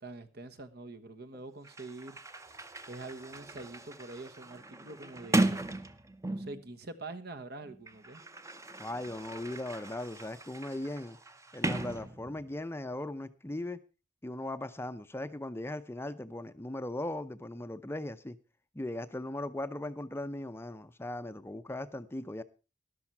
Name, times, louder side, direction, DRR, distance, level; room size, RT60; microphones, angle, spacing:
voice 1, 0.0-2.2 2.9-5.6 6.3-8.2, right 2 dB, 60° right, 1.3 m, -45 dB
Sliding door, 1.3-1.4 1.6-6.7 7.6-12.6, right 2 dB, 15° right, 0.7 m, -36 dB
voice 2, 8.8-11.2 11.5-13.8 14.2-18.4 18.7-22.4, left 1 dB, 15° left, 0.6 m, -38 dB
13.0 x 11.5 x 4.5 m
head